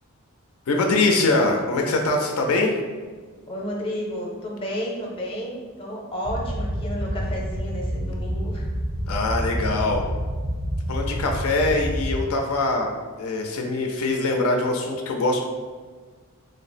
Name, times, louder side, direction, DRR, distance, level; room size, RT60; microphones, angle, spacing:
voice 1, 0.7-2.8 9.1-10.0 10.9-12.9 13.2-15.4, left 2 dB, 75° left, 2 dB, 0.4 m, -23 dB
voice 2, 3.5-8.7, equal, 25° left, -2 dB, 0.6 m, -31 dB
sound 1, 6.2-12.2, equal, 35° right, 0.4 m, -28 dB
3.2 x 2.0 x 4.1 m, 1.5 s
head